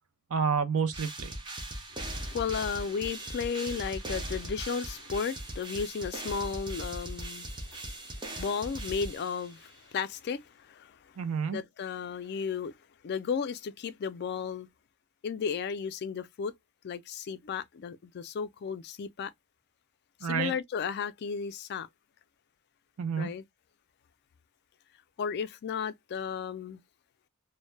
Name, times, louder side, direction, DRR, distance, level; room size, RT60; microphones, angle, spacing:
voice 1, 0.3-1.4 11.2-11.6 20.2-20.5 23.0-23.3, right 6 dB, 75° right, 0.5 m, -29 dB
sound 1, 0.9-9.7, right 1 dB, 20° right, 0.5 m, -39 dB
voice 2, 1.9-11.0 11.5-12.7 13.0-14.7 15.2-16.5 16.8-19.3 20.2-21.9 23.2-23.4 25.2-26.8, left 6 dB, 45° left, 0.3 m, -34 dB
2.1 x 2.0 x 3.1 m
head